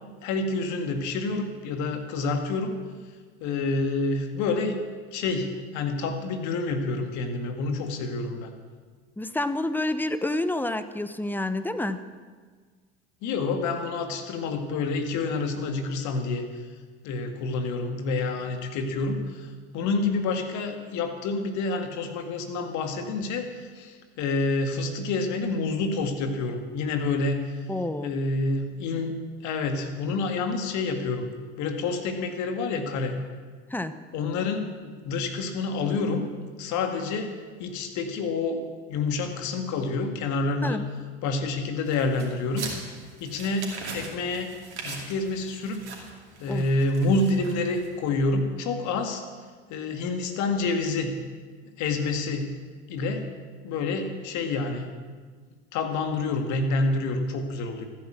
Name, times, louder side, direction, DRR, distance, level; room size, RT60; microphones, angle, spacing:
voice 1, 0.2-2.7 3.4-4.8 5.1-5.5 5.7-8.5 13.2-16.6 17.0-27.4 28.0-29.1 29.4-31.3 31.6-33.2 34.1-36.2 36.6-37.3 37.6-38.6 38.9-40.8 41.2-42.7 43.2-45.9 46.4-49.2 49.7-51.1 51.8-52.5 52.9-53.3 53.6-54.9 55.7-57.9, left 3 dB, 60° left, 6 dB, 2.2 m, -28 dB
voice 2, 9.2-12.1 27.7-28.1 33.7-33.9 40.6-40.9 46.5-46.6, left 1 dB, 5° left, 11 dB, 1.0 m, -28 dB
sound 1, 41.9-48.1, right 4 dB, 90° right, 2.7 m, -41 dB
14.5 x 9.7 x 7.7 m, 1.5 s
hypercardioid pair, 75°, 33 cm